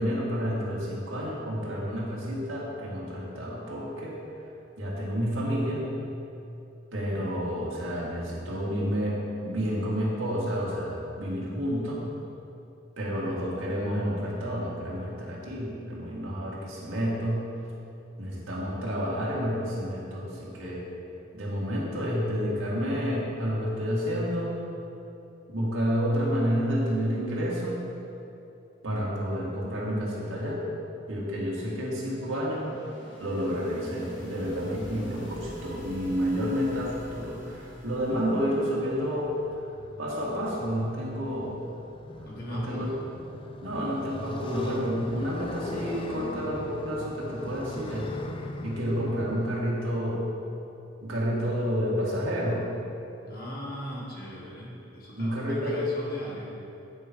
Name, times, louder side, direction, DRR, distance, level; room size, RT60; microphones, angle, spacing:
voice 1, 0.0-4.2 4.8-5.9 6.9-12.0 13.0-17.5 18.2-20.8 21.3-24.5 25.5-27.8 28.8-30.6 31.1-32.7 33.2-39.4 40.0-41.6 42.5-42.9 43.6-48.1 48.6-50.3 51.0-52.7 55.2-55.8, equal, 90° right, -5 dB, 2.0 m, -30 dB
sound 1, 31.0-39.5, equal, 70° left, 1.6 m, -47 dB
Motorcycle, 37.5-49.6, left 2 dB, 25° left, 0.4 m, -41 dB
voice 2, 42.2-43.0 53.2-56.6, equal, 50° left, -5 dB, 1.8 m, -38 dB
9.2 x 4.9 x 5.2 m, 2.8 s
head